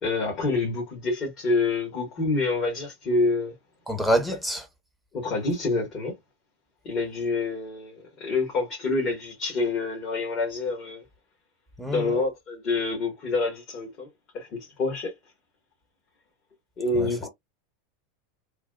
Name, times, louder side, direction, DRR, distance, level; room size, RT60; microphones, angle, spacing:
voice 1, 0.0-3.5 5.1-6.1 6.8-11.0 11.9-14.1 14.3-15.1 16.8-17.3, left 3 dB, 45° left, 1.6 m, -27 dB
voice 2, 3.9-4.7 11.8-12.1 16.9-17.1, equal, ahead, 0.9 m, -26 dB
3.3 x 2.2 x 2.3 m
hypercardioid pair, 95°, 0 cm